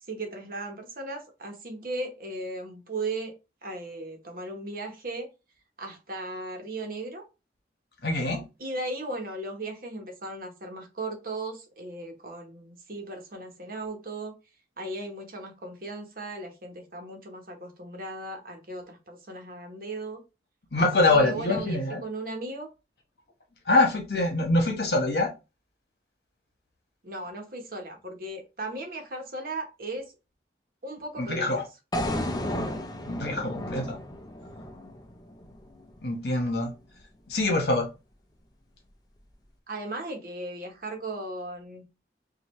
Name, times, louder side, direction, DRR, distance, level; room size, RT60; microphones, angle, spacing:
voice 1, 0.1-3.3 3.6-5.3 5.8-7.2 8.6-14.3 14.8-20.2 20.8-22.7 27.0-30.1 30.8-31.6 39.7-41.8, right 2 dB, 55° right, 3 dB, 1.2 m, -36 dB
voice 2, 8.0-8.4 20.7-22.0 23.7-25.3 31.2-31.6 33.0-34.0 36.0-36.7 37.3-37.9, left 2 dB, 65° left, 2 dB, 1.3 m, -24 dB
sound 1, 31.9-36.0, left 1 dB, 20° left, 0.6 m, -33 dB
5.2 x 2.6 x 3.1 m, 0.27 s
head